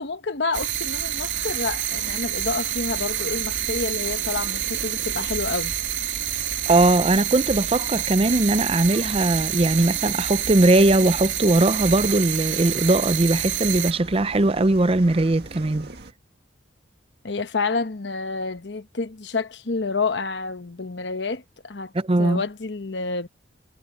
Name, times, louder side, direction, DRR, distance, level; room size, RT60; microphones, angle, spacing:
voice 1, 0.0-5.7 17.2-21.9 22.2-23.3, left 4 dB, 65° left, 1.0 m, -29 dB
sound 1, 0.5-13.9, right 12 dB, 80° right, 2.4 m, -28 dB
sound 2, 0.9-16.1, right 2 dB, 55° right, 1.9 m, -41 dB
voice 2, 6.7-15.9 21.9-22.4, right 2 dB, 30° right, 0.6 m, -20 dB
head